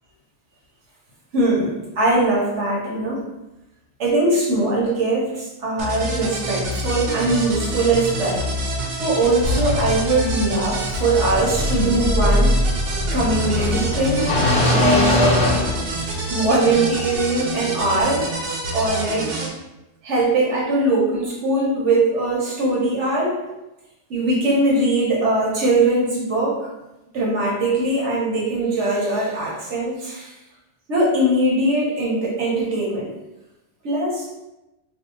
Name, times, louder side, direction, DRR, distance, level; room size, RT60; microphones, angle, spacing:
voice 1, 1.3-3.2 4.0-8.5 9.0-12.6 13.1-14.3 14.7-15.5 16.3-18.3 18.7-19.4 20.0-23.4 24.1-26.7 27.1-30.3 30.9-33.1 33.8-34.3, right 2 dB, 85° right, -4 dB, 1.2 m, -21 dB
sound 1, 5.8-19.5, right 2 dB, 60° right, 0.8 m, -27 dB
sound 2, 9.4-16.4, left 1 dB, 5° left, 0.6 m, -22 dB
2.7 x 2.1 x 4.0 m, 0.98 s
omnidirectional pair, 1.2 m